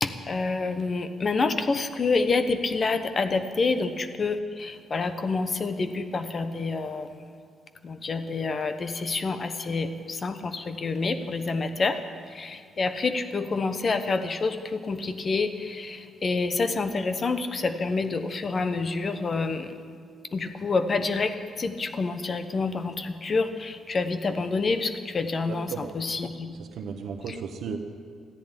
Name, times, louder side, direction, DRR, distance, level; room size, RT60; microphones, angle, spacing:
voice 1, 0.0-7.3 7.8-12.0 12.3-19.7 20.3-26.5, left 3 dB, 40° left, 9 dB, 1.1 m, -28 dB
voice 2, 25.5-25.9 26.5-27.8, right 6 dB, 70° right, 3 dB, 1.1 m, -35 dB
13.5 x 10.5 x 9.9 m, 2.1 s
cardioid pair, 90°, 0 cm